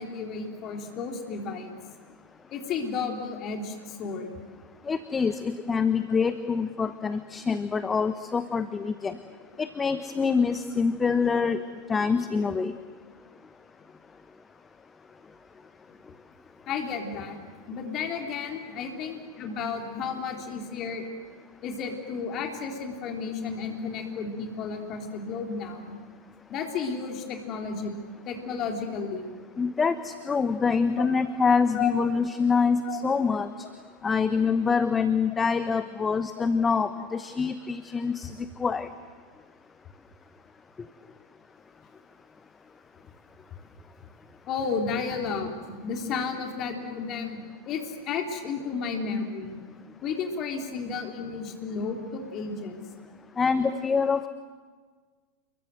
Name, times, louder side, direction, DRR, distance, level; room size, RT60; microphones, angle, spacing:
voice 1, 0.0-1.7 2.5-4.3 16.7-17.4 17.7-21.1 21.6-25.8 26.5-28.0 28.3-29.3 31.0-31.1 31.7-31.9 32.8-33.0 44.5-47.4 47.7-49.6 50.0-52.8, left 5 dB, 35° left, 3 dB, 3.8 m, -32 dB
voice 2, 4.9-9.2 9.6-11.6 11.9-12.7 29.6-33.5 34.0-38.9 53.4-54.3, left 5 dB, 15° left, 12 dB, 1.0 m, -25 dB
29.0 x 22.5 x 7.8 m, 1.5 s
figure-of-eight pair, 90°, 0 cm